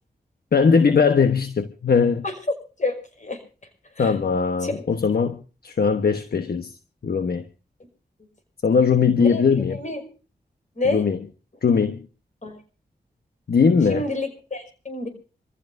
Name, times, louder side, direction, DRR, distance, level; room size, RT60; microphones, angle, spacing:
voice 1, 0.5-2.2 4.0-6.7 7.0-7.4 8.6-9.8 10.8-11.2 11.6-12.1 13.5-14.1, left 5 dB, 65° left, 1.1 m, -20 dB
voice 2, 2.8-3.4 4.0-4.1 4.6-4.9 9.2-9.4 9.8-10.0 10.8-11.0 12.4-12.6 13.9-15.1, left 2 dB, 45° left, 5.6 m, -28 dB
26.0 x 15.5 x 2.6 m
cardioid pair, 50°, 17 cm